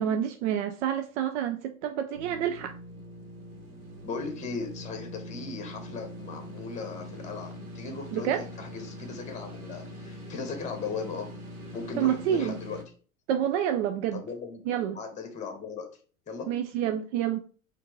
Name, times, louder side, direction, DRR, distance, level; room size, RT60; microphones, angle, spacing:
voice 1, 0.0-2.7 8.1-8.4 12.0-12.6 13.3-14.2 14.7-15.0 16.5-17.4, right 9 dB, 55° right, 6 dB, 0.5 m, -28 dB
sound 1, 2.1-12.8, left 1 dB, 85° right, 1.3 m, -43 dB
voice 2, 4.0-11.3 11.7-12.8 14.1-14.6 14.9-15.9 16.3-16.5, left 4 dB, 15° left, 5 dB, 1.1 m, -37 dB
4.3 x 2.7 x 4.5 m, 0.41 s
hypercardioid pair, 85°, 42 cm